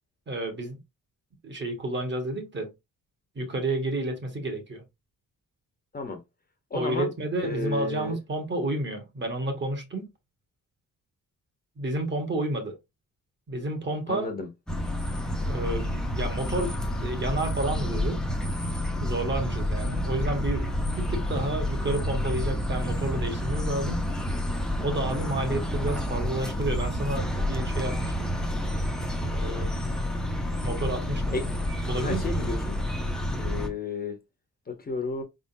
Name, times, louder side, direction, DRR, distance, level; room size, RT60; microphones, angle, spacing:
voice 1, 0.3-0.8 1.4-2.7 3.3-4.8 6.7-10.1 11.8-12.8 13.5-14.3 15.5-18.2 19.0-24.0 24.8-28.3 29.2-29.7 30.6-31.4 31.8-32.6, right 2 dB, 35° right, 1.5 m, -31 dB
voice 2, 6.7-7.1 7.4-8.2 14.1-14.5 31.3-31.4 32.0-32.8 33.4-34.2 34.7-35.2, left 3 dB, 30° left, 1.0 m, -32 dB
sound 1, 14.7-33.7, left 1 dB, ahead, 0.8 m, -29 dB
5.0 x 3.7 x 2.7 m
wide cardioid pair, 170°, 32 cm